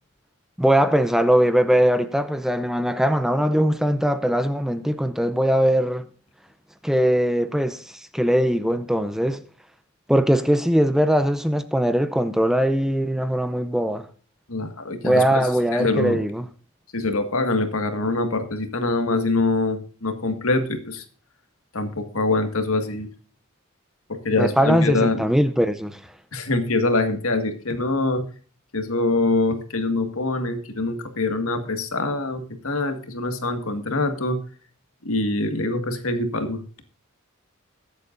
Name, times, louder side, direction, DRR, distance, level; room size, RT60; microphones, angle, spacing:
voice 1, 0.6-6.1 6.8-9.4 10.1-14.1 15.0-16.4 24.4-26.0, equal, ahead, 0.6 m, -21 dB
voice 2, 14.5-16.2 16.9-21.0 21.7-23.1 24.1-25.2 26.3-28.2 28.7-34.4 35.0-36.6, left 2 dB, 80° left, 1.9 m, -24 dB
22.0 x 8.3 x 2.6 m
head